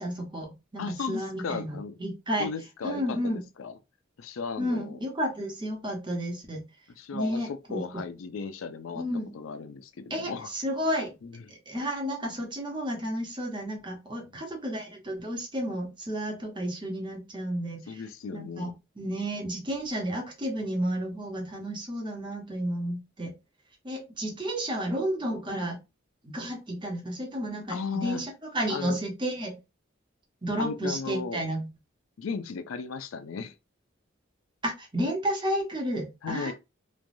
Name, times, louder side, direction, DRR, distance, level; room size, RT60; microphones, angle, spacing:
voice 1, 0.0-0.8 1.1-2.5 2.8-3.4 4.6-6.6 7.1-7.8 8.9-9.3 10.1-11.1 11.5-18.0 18.3-18.7 19.0-23.3 23.8-25.8 26.2-29.6 30.4-31.7 34.6-36.5, equal, 25° right, 0.9 m, -32 dB
voice 2, 0.8-2.0 2.4-3.7 4.2-5.0 7.0-9.1 9.3-10.5 11.2-11.3 17.9-18.7 27.7-28.2 28.7-29.0 30.6-31.4 32.2-33.5 36.2-36.5, left 5 dB, 85° left, 0.4 m, -35 dB
3.2 x 2.2 x 2.5 m
head